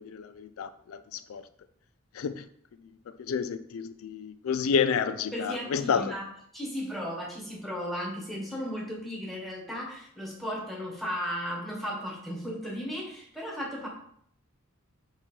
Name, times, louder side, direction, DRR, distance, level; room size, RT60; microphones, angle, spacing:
voice 1, 0.0-1.4 2.1-2.5 3.2-6.1, left 6 dB, 85° left, 0.4 m, -30 dB
voice 2, 5.3-6.3 6.5-13.9, equal, ahead, 1.6 m, -35 dB
7.7 x 3.0 x 4.5 m
head